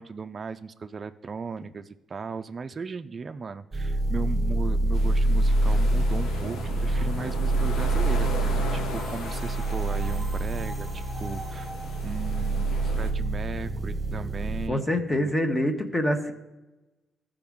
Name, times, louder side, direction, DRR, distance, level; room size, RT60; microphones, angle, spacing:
voice 1, 0.0-15.3, right 5 dB, 35° right, 8 dB, 0.3 m, -37 dB
sound 1, 3.7-14.7, right 2 dB, 15° right, 1.4 m, -26 dB
sound 2, 4.9-13.1, left 4 dB, 85° left, 0.9 m, -38 dB
voice 2, 14.7-16.3, left 1 dB, 20° left, 5 dB, 1.0 m, -25 dB
14.0 x 5.0 x 3.6 m, 1.0 s
cardioid pair, 90°, 0 cm